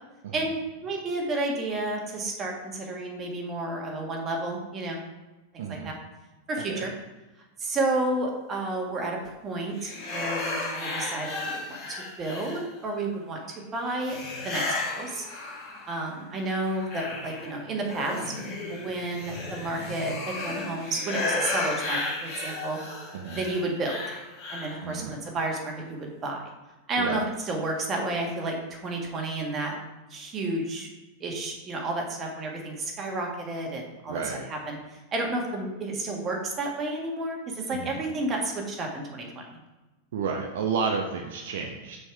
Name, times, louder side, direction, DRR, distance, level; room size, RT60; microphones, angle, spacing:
voice 1, 0.8-5.0 5.5-5.9 6.5-6.9 7.6-14.1 14.4-15.2 15.9-18.3 18.7-22.8 23.3-24.0 24.5-26.5 26.9-29.7 30.1-30.9 31.2-34.2 34.5-34.8 35.1-39.4, right 2 dB, 25° right, 0 dB, 1.7 m, -31 dB
voice 2, 5.6-5.9 6.7-6.8 23.1-23.4 24.8-25.2 27.0-27.2 34.1-34.5 37.7-37.9 40.1-42.0, right 5 dB, 55° right, 2 dB, 0.7 m, -31 dB
sound 1, 9.8-12.9 14.0-16.0 16.4-24.9, left 2 dB, 40° left, 2.4 m, -34 dB
6.3 x 4.9 x 4.8 m, 1.1 s
figure-of-eight pair, 90°, 0 cm